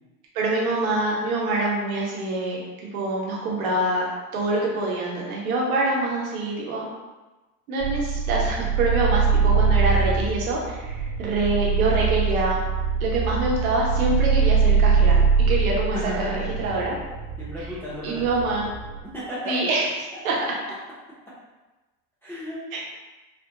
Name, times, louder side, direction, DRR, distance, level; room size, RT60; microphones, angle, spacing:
voice 1, 0.3-2.6 2.9-4.1 4.3-6.9 7.7-12.6 13.0-16.9 17.6-17.7 18.0-18.7 19.4-19.9 20.2-20.3 22.7-22.8, right 2 dB, 70° right, -3 dB, 0.9 m, -25 dB
sound 1, 7.8-17.7 18.2-19.0, right 5 dB, 50° right, 0.6 m, -22 dB
voice 2, 15.9-16.6 17.4-18.5 19.1-19.6 22.2-22.6, equal, 5° left, -10 dB, 0.3 m, -34 dB
2.5 x 2.1 x 2.7 m, 1.2 s
hypercardioid pair, 80°, 44 cm